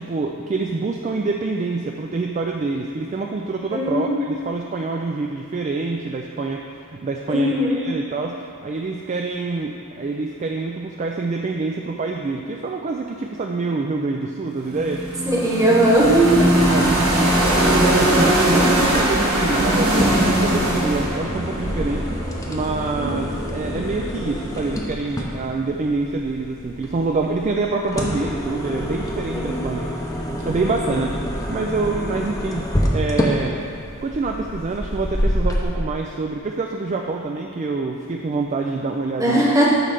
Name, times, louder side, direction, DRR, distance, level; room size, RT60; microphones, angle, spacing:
voice 1, 0.0-8.4 8.6-15.0 16.6-22.2 22.5-33.6 34.0-39.5, right 3 dB, 35° right, 2 dB, 0.3 m, -26 dB
voice 2, 3.7-4.2 7.3-7.8 15.2-16.5 23.0-23.3 29.3-29.6 30.6-31.0 39.2-39.7, right 1 dB, 15° right, -4 dB, 1.2 m, -19 dB
sound 1, 14.6-22.7, right 1 dB, 75° right, 1.6 m, -20 dB
sound 2, 18.8-35.6, equal, 15° left, 0.7 m, -27 dB
8.8 x 3.3 x 6.6 m, 2.5 s
head